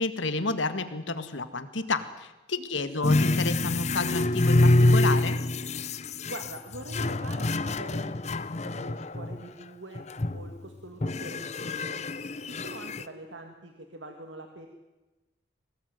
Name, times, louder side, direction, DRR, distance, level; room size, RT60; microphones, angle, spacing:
voice 1, 0.0-5.4, left 3 dB, 85° left, 11 dB, 1.9 m, -31 dB
voice 2, 2.6-3.2 6.3-8.4 8.6-10.0 10.3-12.0 12.4-14.7, right 1 dB, 80° right, 5 dB, 2.1 m, -44 dB
sound 1, 3.0-9.4 9.9-10.6 11.0-13.0, left 2 dB, 35° left, 0.7 m, -26 dB
22.5 x 18.0 x 9.4 m, 1.1 s
head